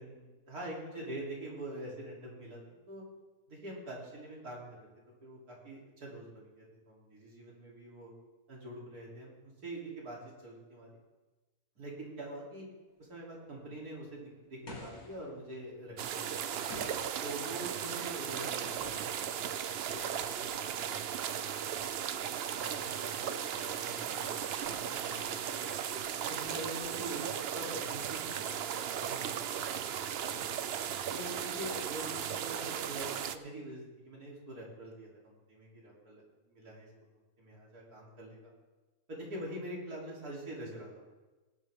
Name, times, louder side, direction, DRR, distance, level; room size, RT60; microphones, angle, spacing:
voice 1, 0.0-3.0 3.5-4.9 5.2-8.1 8.5-10.2 10.4-10.9 11.8-12.6 13.0-16.6 17.2-22.1 22.6-24.3 24.6-25.8 26.3-28.5 29.0-30.5 31.1-36.9 37.4-38.5 39.1-41.0, right 1 dB, 85° right, -4 dB, 3.7 m, -45 dB
sound 1, 13.2-13.3 13.7-13.8 14.0-14.1 14.7-15.6 16.7-17.4 18.8-19.2, left 1 dB, 80° left, 2.8 m, -47 dB
sound 2, 16.0-33.4, right 9 dB, 60° right, 0.6 m, -36 dB
18.0 x 11.0 x 3.6 m, 1.2 s
omnidirectional pair, 1.6 m